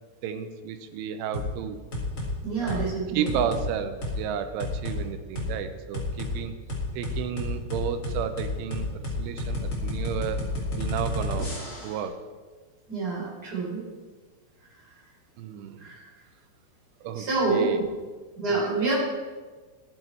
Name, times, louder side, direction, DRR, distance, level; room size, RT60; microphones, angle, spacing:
voice 1, 0.2-1.8 2.6-6.5 7.0-10.4 10.8-11.5 11.8-12.2 15.4-15.9 17.0-17.8 18.5-18.7, right 8 dB, 80° right, 9 dB, 3.0 m, -32 dB
sound 1, 1.3-1.5 1.9-2.3 2.7-2.9 3.3-3.7 4.0-4.2 4.6-5.0 5.4-5.5 5.9-6.3 6.7-12.0, left 2 dB, 30° left, 1.4 m, -31 dB
voice 2, 2.4-3.3 12.9-13.9 15.8-16.0 17.1-17.7 18.4-18.9, right 3 dB, 20° right, -4 dB, 3.3 m, -27 dB
13.0 x 10.5 x 4.5 m, 1.4 s
omnidirectional pair, 5.9 m